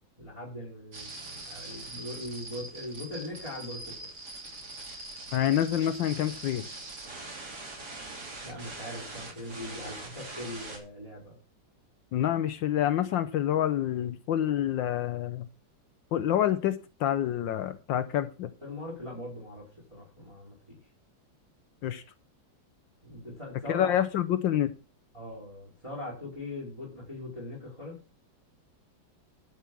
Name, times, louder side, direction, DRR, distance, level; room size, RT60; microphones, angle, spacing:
voice 1, 0.2-3.9 8.4-11.4 18.6-20.8 23.0-23.9 25.1-28.0, left 1 dB, 15° right, -7 dB, 4.7 m, -40 dB
sound 1, 0.9-10.8, right 2 dB, 55° right, 3.4 m, -42 dB
voice 2, 5.3-6.6 12.1-15.5 16.1-18.5 21.8-22.0 23.7-24.7, left 11 dB, 75° left, 11 dB, 1.4 m, -27 dB
12.0 x 6.0 x 6.0 m, 0.34 s
omnidirectional pair, 2.1 m